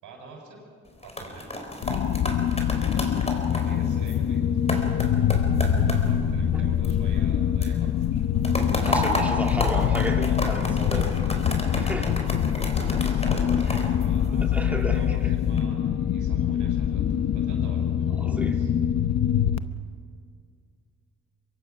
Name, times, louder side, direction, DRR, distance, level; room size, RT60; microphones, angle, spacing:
voice 1, 0.0-0.6 1.0-1.5 2.7-3.0 3.5-4.4 4.7-5.4 5.6-8.2 12.2-17.1 17.3-18.7, right 3 dB, 85° right, -2 dB, 7.1 m, -47 dB
sound 1, 0.9-7.3 7.6-14.8 15.3-15.6, left 1 dB, 20° left, 4.3 m, -32 dB
sound 2, 1.8-19.6, left 9 dB, 60° left, 0.9 m, -24 dB
voice 2, 8.8-11.1 11.7-12.2 13.7-13.8 14.5-15.3 18.2-18.6, right 1 dB, 5° right, 1 dB, 2.9 m, -33 dB
24.0 x 22.0 x 5.9 m, 2.2 s
cardioid pair, 90°, 30 cm